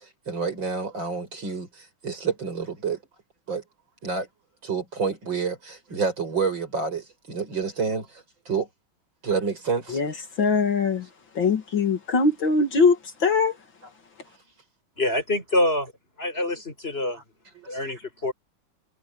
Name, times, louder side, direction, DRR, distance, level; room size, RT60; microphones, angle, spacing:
voice 1, 0.3-3.0 3.5-3.6 4.0-4.3 4.6-8.7 9.2-10.2 17.5-17.9, right 5 dB, 60° right, 6.6 m, -29 dB
voice 2, 9.9-11.1 11.4-13.6, left 4 dB, 60° left, 2.7 m, -22 dB
voice 3, 15.0-15.9 16.2-17.2 17.7-18.3, left 1 dB, 25° left, 5.1 m, -25 dB
omnidirectional pair, 2.4 m